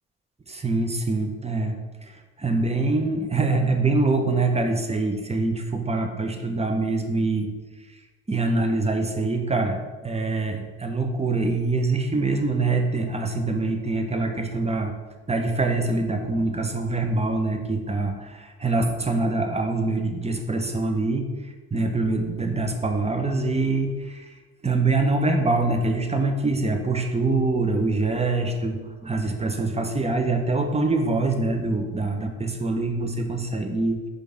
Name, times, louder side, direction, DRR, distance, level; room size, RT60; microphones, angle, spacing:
voice 1, 0.5-1.7 2.1-7.5 8.3-14.9 15.3-21.3 21.7-24.3 24.6-34.0, right 3 dB, 15° right, 4 dB, 1.2 m, -24 dB
5.2 x 5.0 x 5.9 m, 1.3 s
hypercardioid pair, 50°, 36 cm